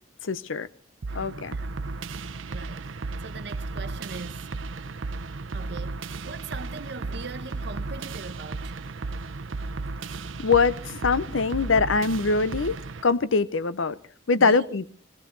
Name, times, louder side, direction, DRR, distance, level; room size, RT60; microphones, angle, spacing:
voice 1, 0.2-0.7 1.1-1.6 10.4-12.8 13.0-14.0 14.3-14.9, left 4 dB, 85° left, 0.8 m, -23 dB
sound 1, 1.0-13.0, right 3 dB, 85° right, 0.7 m, -34 dB
voice 2, 1.1-2.0 2.5-2.9 3.2-4.5 5.5-8.8 14.3-14.8, right 3 dB, 60° right, 1.0 m, -41 dB
19.0 x 17.0 x 4.0 m
head